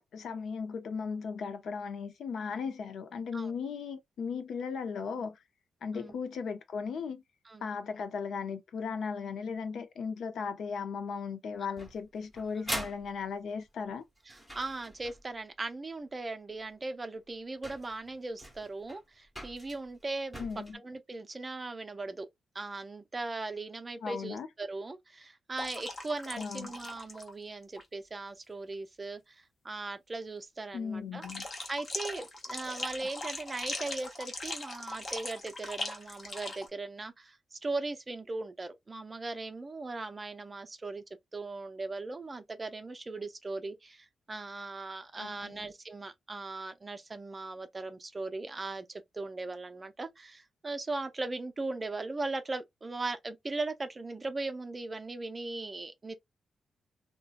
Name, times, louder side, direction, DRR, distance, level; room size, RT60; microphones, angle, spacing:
voice 1, 0.0-5.4 5.8-7.2 7.6-14.0 20.4-20.8 24.0-24.5 26.4-26.7 30.7-31.5 45.2-45.7, left 5 dB, 70° left, 0.5 m, -37 dB
sound 1, 11.8-15.4 16.7-16.8 17.3-17.4 17.6-20.7, equal, ahead, 0.9 m, -43 dB
voice 2, 14.3-20.5 20.7-22.3 22.5-31.2 31.7-41.0 41.3-56.2, right 3 dB, 25° right, 0.4 m, -39 dB
sound 2, 25.6-27.3 27.6-27.8 31.2-36.7, left 2 dB, 30° left, 0.8 m, -40 dB
2.6 x 2.2 x 2.4 m
cardioid pair, 125°, 0 cm